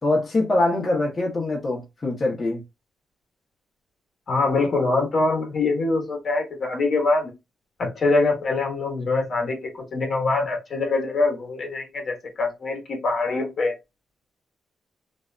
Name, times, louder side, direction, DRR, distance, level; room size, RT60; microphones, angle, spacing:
voice 1, 0.0-2.6, left 2 dB, 40° left, 1.0 m, -23 dB
voice 2, 4.3-7.3 7.8-13.7, left 3 dB, 60° left, 1.2 m, -24 dB
2.6 x 2.5 x 2.2 m
supercardioid pair, 60°, 0 cm